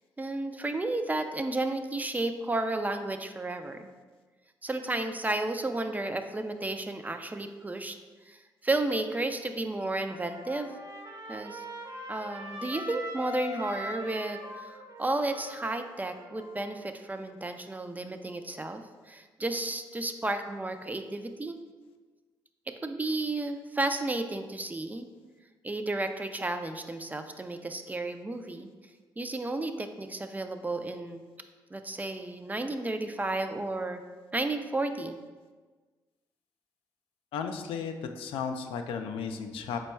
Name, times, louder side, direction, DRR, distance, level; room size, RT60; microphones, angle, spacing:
voice 1, 0.2-3.9 4.6-8.0 8.3-10.7 11.3-11.6 12.1-21.6 22.7-25.1 25.6-28.7 29.2-31.2 31.7-34.0 34.3-35.2, right 2 dB, 15° right, 7 dB, 0.4 m, -32 dB
Trumpet, 10.1-16.7, equal, 45° right, 1.0 m, -42 dB
voice 2, 37.3-39.8, left 6 dB, 70° left, 6 dB, 0.3 m, -34 dB
4.3 x 2.2 x 4.2 m, 1.4 s
hypercardioid pair, 50°, 10 cm